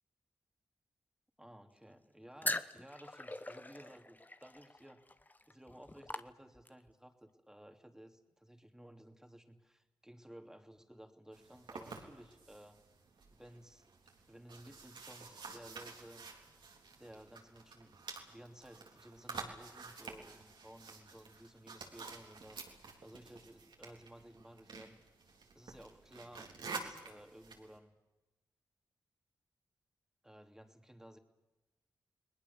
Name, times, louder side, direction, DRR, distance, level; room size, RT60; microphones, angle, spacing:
voice 1, 1.4-5.0 5.5-12.8 13.3-13.8 14.3-16.3 16.9-18.0 18.3-25.0 25.5-28.0 30.2-31.2, right 1 dB, 5° right, 5 dB, 2.9 m, -56 dB
sound 1, 2.4-6.9, left 2 dB, 20° left, 1.1 m, -42 dB
sound 2, 11.3-27.8, right 4 dB, 75° right, 3.7 m, -50 dB
30.0 x 19.5 x 7.1 m, 1.1 s
cardioid pair, 45°, 8 cm